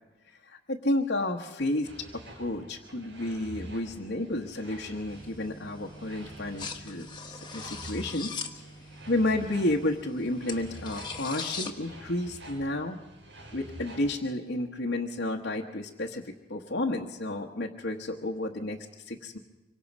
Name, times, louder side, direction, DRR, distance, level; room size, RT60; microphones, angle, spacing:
voice 1, 0.3-1.9 2.3-8.3 8.9-13.0 13.5-18.8 19.0-19.4, left 1 dB, 70° left, -2 dB, 1.3 m, -31 dB
sound 1, 1.8-14.1, right 1 dB, 85° right, 6.1 m, -48 dB
sound 2, 5.1-11.7, left 4 dB, 25° left, 1.4 m, -41 dB
25.5 x 24.0 x 5.4 m, 1.1 s
head